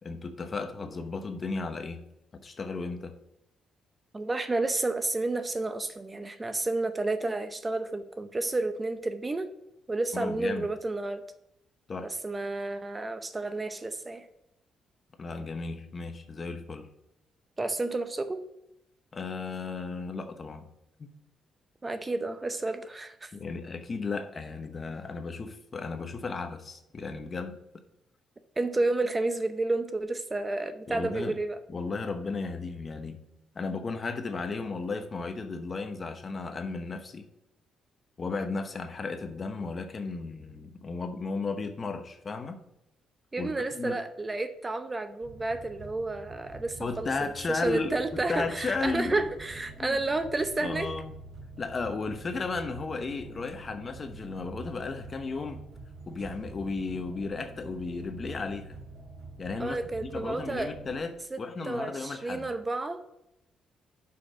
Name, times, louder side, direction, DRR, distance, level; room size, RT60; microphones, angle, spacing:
voice 1, 0.0-2.0 2.4-3.1 10.1-10.7 11.9-12.1 15.2-16.9 19.1-20.7 21.0-21.1 23.3-27.6 30.9-31.4 31.7-33.2 33.5-37.3 38.2-42.6 43.4-44.0 46.8-49.2 49.8-50.0 50.6-51.1 51.6-55.6 56.1-58.8 59.4-62.5, left 4 dB, 40° left, 8 dB, 0.9 m, -34 dB
voice 2, 4.1-9.5 9.9-11.2 12.0-14.3 17.6-18.4 21.8-23.3 28.6-31.6 43.3-47.1 47.5-50.9 59.6-60.7 61.3-61.4 61.6-63.0, right 2 dB, 20° right, 9 dB, 0.7 m, -31 dB
sound 1, 45.2-61.0, right 3 dB, 75° right, 3.2 m, -46 dB
6.0 x 5.7 x 6.2 m, 0.84 s
cardioid pair, 90°, 0 cm